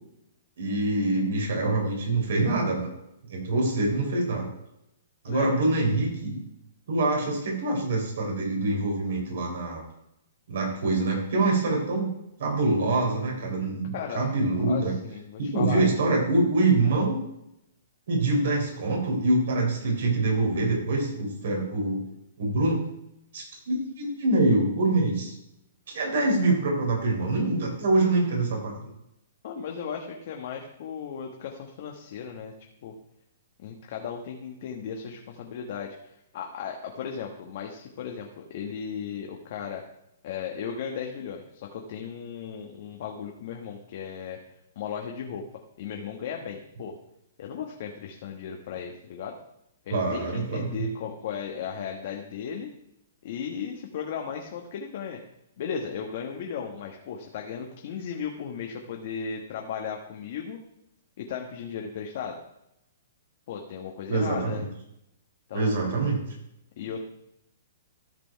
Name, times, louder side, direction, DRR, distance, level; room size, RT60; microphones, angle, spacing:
voice 1, 0.6-2.9 3.3-4.5 5.2-6.4 6.9-9.8 10.5-12.1 12.4-14.9 15.4-17.2 18.1-22.0 22.4-22.8 23.3-25.3 25.9-28.8 49.9-50.9 64.1-64.7 65.5-66.2, right 2 dB, 70° right, 0 dB, 4.4 m, -25 dB
voice 2, 13.9-14.3 14.7-15.8 29.4-32.5 32.8-32.9 33.6-39.8 40.2-44.4 44.7-45.4 45.8-46.9 47.4-49.3 49.8-52.7 53.2-55.2 55.6-60.6 61.2-62.4 63.5-64.7 65.5-65.8 66.8-67.0, left 7 dB, 55° left, 1 dB, 1.3 m, -36 dB
13.5 x 5.2 x 4.6 m, 0.81 s
hypercardioid pair, 145°, 0 cm